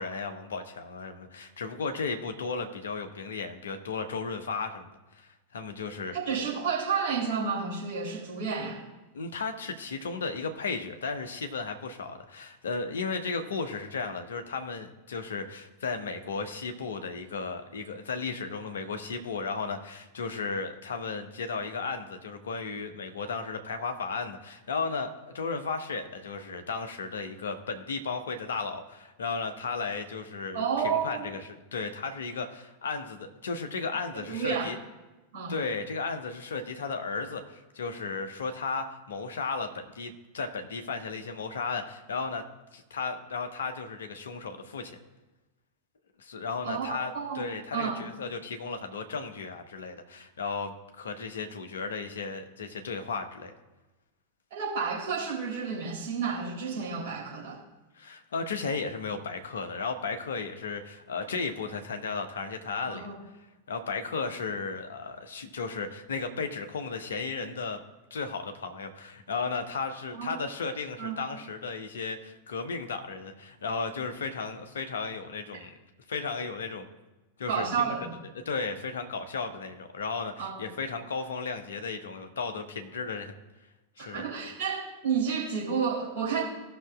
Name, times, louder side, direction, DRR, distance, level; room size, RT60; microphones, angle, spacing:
voice 1, 0.0-4.9 5.1-6.1 9.1-34.8 35.5-42.4 42.7-45.0 46.2-53.5 58.0-63.1 63.7-67.8 68.1-75.7 76.1-76.9 77.4-77.9 78.3-83.3 84.0-84.2, left 4 dB, 65° left, 6 dB, 0.9 m, -35 dB
voice 2, 6.1-8.8 30.5-31.3 34.3-34.7 35.3-35.5 46.6-47.4 47.7-48.0 54.5-57.6 62.8-63.2 70.1-70.3 71.0-71.2 77.5-78.1 80.4-80.7 84.0-86.4, right 6 dB, 50° right, -4 dB, 3.2 m, -31 dB
17.5 x 6.0 x 2.4 m, 1.1 s
figure-of-eight pair, 90°, 0 cm